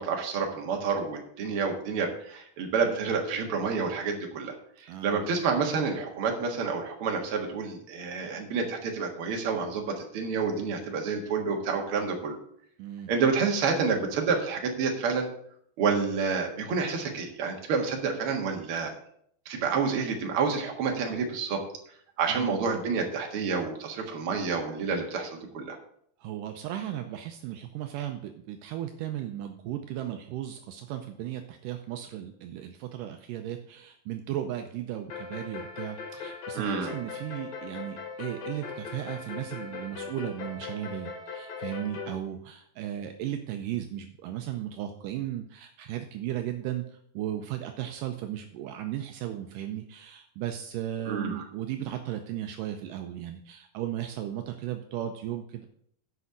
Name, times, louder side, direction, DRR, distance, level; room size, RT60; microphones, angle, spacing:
voice 1, 0.0-12.4 13.1-15.3 15.8-18.9 19.5-21.6 22.2-25.8 36.5-36.9 51.1-51.4, right 5 dB, 50° right, 2 dB, 1.9 m, -29 dB
voice 2, 4.9-5.2 12.8-13.1 22.3-22.6 26.2-55.7, right 11 dB, 80° right, 6 dB, 2.1 m, -36 dB
sound 1, 35.1-42.2, left 5 dB, 70° left, 3.5 m, -39 dB
8.4 x 5.5 x 7.8 m, 0.67 s
omnidirectional pair, 4.1 m